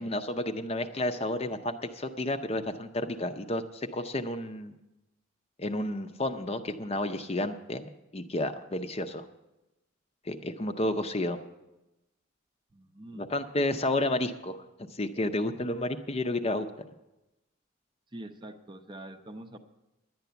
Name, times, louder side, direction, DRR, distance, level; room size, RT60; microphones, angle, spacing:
voice 1, 0.0-4.7 5.6-9.2 10.3-11.4 13.1-16.7, left 1 dB, 30° left, 8 dB, 0.6 m, -31 dB
voice 2, 12.7-13.3 18.1-19.6, right 1 dB, 25° right, 7 dB, 0.6 m, -44 dB
11.0 x 9.2 x 6.9 m, 0.98 s
head